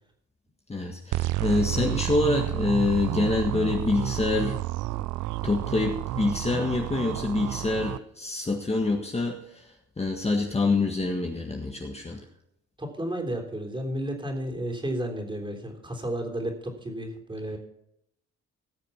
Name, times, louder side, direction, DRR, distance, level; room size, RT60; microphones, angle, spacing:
voice 1, 0.7-4.6 5.4-12.2, left 3 dB, 20° left, 1 dB, 1.7 m, -26 dB
sound 1, 1.1-8.0, right 15 dB, 80° right, 0.5 m, -30 dB
voice 2, 12.8-17.6, right 1 dB, 15° right, 2 dB, 3.5 m, -32 dB
18.0 x 6.7 x 5.8 m, 0.78 s
cardioid pair, 90°, 30 cm